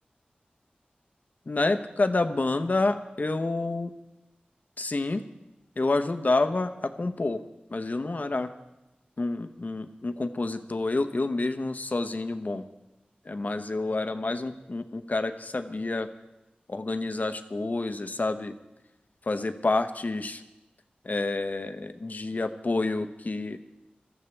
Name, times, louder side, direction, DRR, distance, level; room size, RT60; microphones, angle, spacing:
voice 1, 1.5-3.9 4.8-5.2 5.8-7.4 7.7-8.5 9.2-12.6 13.2-16.1 16.7-18.6 19.2-20.4 21.0-23.6, left 2 dB, 55° left, 8 dB, 0.9 m, -28 dB
21.5 x 13.5 x 3.3 m, 0.97 s
cardioid pair, 45°, 3 cm